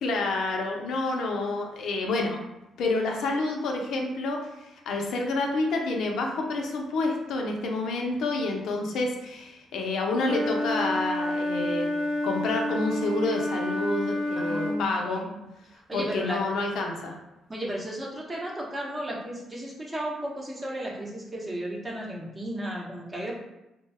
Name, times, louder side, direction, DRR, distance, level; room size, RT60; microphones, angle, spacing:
voice 1, 0.0-2.4 2.8-11.9 12.2-15.3 15.9-17.1, left 2 dB, 75° left, 1 dB, 0.5 m, -28 dB
Wind instrument woodwind instrument, 10.2-14.8, left 1 dB, 85° right, 0.6 m, -29 dB
voice 2, 14.3-15.3 15.9-16.4 17.5-23.3, right 1 dB, 25° right, -3 dB, 0.8 m, -34 dB
2.6 x 2.2 x 3.3 m, 0.93 s
cardioid pair, 90°, 0 cm